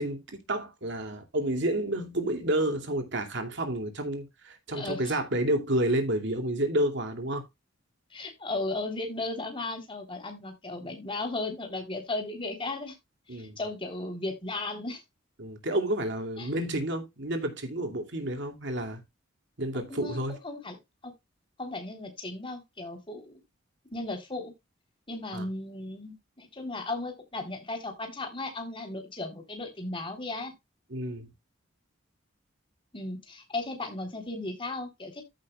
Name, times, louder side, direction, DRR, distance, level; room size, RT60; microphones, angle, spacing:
voice 1, 0.0-7.5 13.3-13.6 15.4-19.0 19.6-20.3 25.3-25.4 30.9-31.3, right 1 dB, 65° right, 2.6 m, -30 dB
voice 2, 4.7-5.2 8.1-12.9 13.3-15.0 16.4-16.5 19.9-20.8 21.0-21.1 21.6-23.4 23.9-24.5 25.1-30.5 32.9-35.2, left 2 dB, 25° left, 3.5 m, -36 dB
14.5 x 6.4 x 2.4 m
head